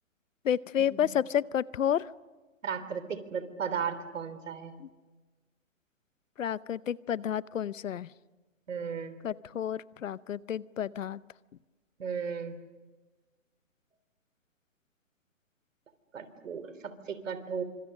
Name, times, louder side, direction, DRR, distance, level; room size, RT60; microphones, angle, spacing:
voice 1, 0.4-2.1 4.8-4.9 6.4-8.1 9.2-11.2, left 9 dB, 70° left, 20 dB, 0.8 m, -30 dB
voice 2, 2.6-4.8 8.7-9.2 12.0-12.6 16.1-16.7 17.1-17.6, right 6 dB, 65° right, 12 dB, 3.4 m, -35 dB
27.5 x 25.5 x 6.6 m, 1.2 s
hypercardioid pair, 160°, 40 cm